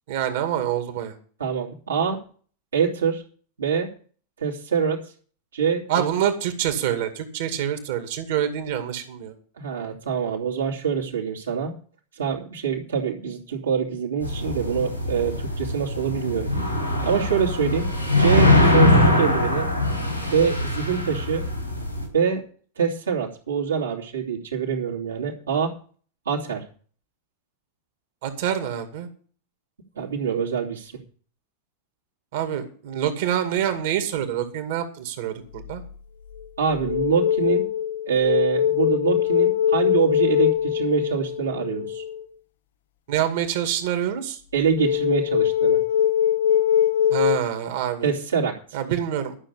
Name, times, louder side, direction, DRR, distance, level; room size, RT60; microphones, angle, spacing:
voice 1, 0.1-1.1 5.9-9.3 28.2-29.1 32.3-35.8 43.1-44.4 47.1-48.1 48.7-49.4, right 10 dB, 55° right, 8 dB, 2.3 m, -26 dB
voice 2, 1.4-2.2 2.7-3.2 3.6-3.9 4.4-5.1 5.5-6.1 9.6-11.8 12.2-16.5 17.0-17.9 18.2-19.7 20.3-21.4 22.1-22.4 22.8-25.8 26.3-26.6 30.0-30.9 36.6-37.7 38.1-42.0 44.5-45.8 48.0-48.8, right 6 dB, 70° right, -1 dB, 2.7 m, -25 dB
sound 1, 14.2-22.1, left 1 dB, 90° left, 5.3 m, -22 dB
sound 2, 35.6-35.9 36.3-42.2 44.7-47.4, left 9 dB, 60° left, 0.8 m, -22 dB
12.5 x 6.6 x 8.3 m, 0.44 s
figure-of-eight pair, 90°, 0 cm